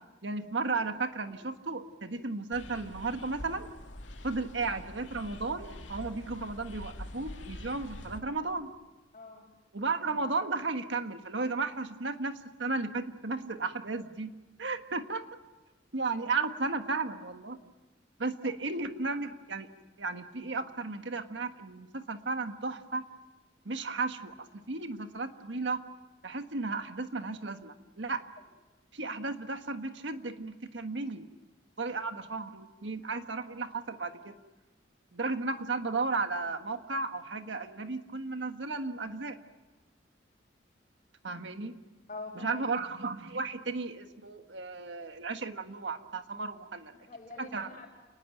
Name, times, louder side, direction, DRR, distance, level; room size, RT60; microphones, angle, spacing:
voice 1, 0.2-3.7 4.2-8.7 9.7-14.3 14.6-15.3 15.9-17.6 18.2-19.7 20.0-23.0 23.6-25.8 26.2-28.2 28.9-31.3 31.8-34.4 35.1-39.4 41.2-41.7 42.4-46.9 47.4-47.7, right 3 dB, 75° right, 8 dB, 1.5 m, -34 dB
sound 1, 2.5-8.2, left 1 dB, 90° left, 2.2 m, -45 dB
voice 2, 9.1-9.5 18.4-18.5 28.4-28.5 42.1-42.6 46.9-47.9, left 3 dB, 40° left, -4 dB, 5.2 m, -45 dB
29.5 x 20.0 x 9.1 m, 1.2 s
head